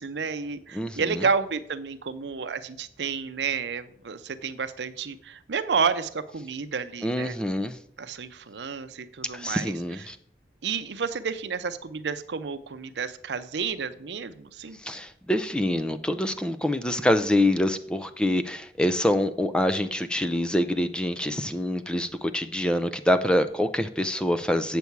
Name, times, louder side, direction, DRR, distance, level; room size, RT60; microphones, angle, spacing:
voice 1, 0.0-7.4 8.0-10.0 10.6-14.8 16.7-17.1, right 5 dB, 85° right, 11 dB, 0.6 m, -31 dB
voice 2, 0.7-1.2 7.0-7.8 9.3-10.2 14.8-24.8, left 1 dB, 5° left, 10 dB, 0.4 m, -25 dB
8.3 x 6.9 x 4.6 m, 0.67 s
head